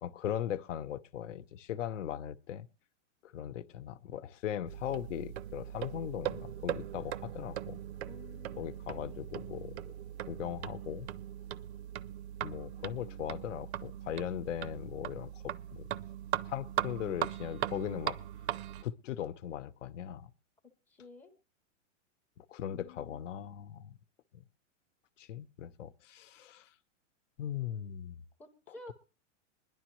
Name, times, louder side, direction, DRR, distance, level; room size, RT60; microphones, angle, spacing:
voice 1, 0.0-2.7 3.2-7.8 8.6-9.8 10.3-11.1 12.4-15.9 16.5-18.2 18.8-20.3 22.4-24.0 24.3-24.4 25.2-26.7 27.4-28.2, left 10 dB, 75° left, 0.9 m, -39 dB
sound 1, 4.7-18.8, right 12 dB, 60° right, 0.6 m, -39 dB
voice 2, 8.1-9.2 12.7-13.7 20.9-21.3 22.6-23.2 28.4-28.9, left 3 dB, 5° left, 0.5 m, -54 dB
20.5 x 11.0 x 3.1 m
supercardioid pair, 170°, 37 cm